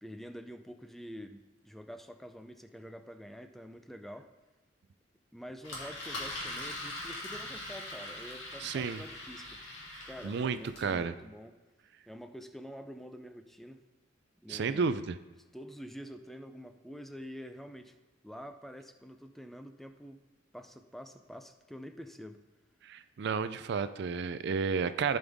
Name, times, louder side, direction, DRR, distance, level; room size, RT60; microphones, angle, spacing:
voice 1, 0.0-4.3 5.3-9.6 10.1-11.6 12.1-13.8 14.4-14.9 15.5-17.9 18.2-20.2 20.5-22.4, equal, ahead, 7 dB, 0.5 m, -47 dB
Engine, 5.6-10.9, left 1 dB, 85° left, 2.3 m, -42 dB
voice 2, 8.6-9.0 10.2-11.1 14.5-15.0 22.9-25.2, right 5 dB, 60° right, 12 dB, 0.4 m, -31 dB
14.5 x 5.4 x 3.5 m, 1.2 s
head